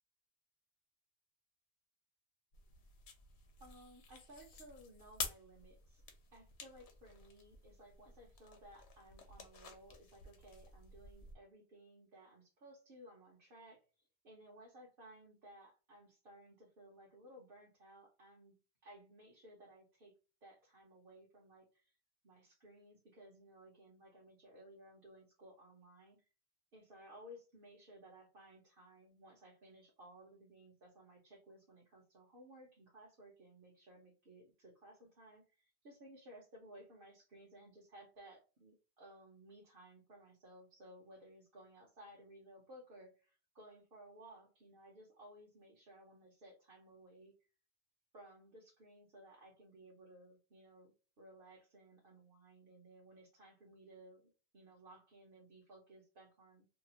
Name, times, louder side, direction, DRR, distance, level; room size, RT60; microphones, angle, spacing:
sound 1, 2.5-11.4, left 5 dB, 80° left, 1.0 m, -50 dB
voice 1, 3.6-6.0 6.3-18.6 18.8-20.1 20.4-22.0 22.2-26.2 26.7-47.3 48.1-56.6, right 1 dB, 60° right, -2 dB, 1.0 m, -59 dB
2.8 x 2.4 x 2.8 m, 0.33 s
omnidirectional pair, 1.1 m